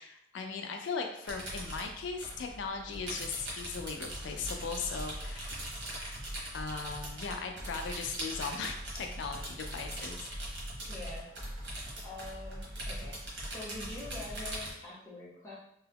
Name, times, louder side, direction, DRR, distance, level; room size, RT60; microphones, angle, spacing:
voice 1, 0.0-5.6 6.5-10.3, left 5 dB, 90° left, 4 dB, 0.4 m, -38 dB
sound 1, 1.3-14.7, right 1 dB, 85° right, 1.1 m, -41 dB
voice 2, 10.9-11.3 12.0-13.2 13.5-15.5, left 2 dB, 15° left, -7 dB, 0.8 m, -45 dB
2.8 x 2.3 x 3.4 m, 0.77 s
head